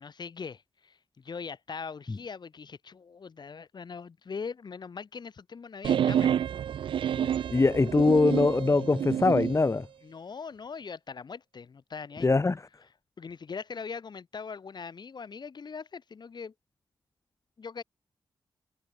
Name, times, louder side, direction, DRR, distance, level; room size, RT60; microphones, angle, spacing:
voice 1, 0.0-6.4 10.0-12.3 13.2-16.5 17.6-17.8, left 5 dB, 60° left, 6.4 m, -41 dB
sound 1, 5.8-9.6, right 9 dB, 90° right, 2.6 m, -28 dB
voice 2, 7.2-9.9 12.2-12.6, left 3 dB, 35° left, 3.6 m, -23 dB
cardioid pair, 60°, 8 cm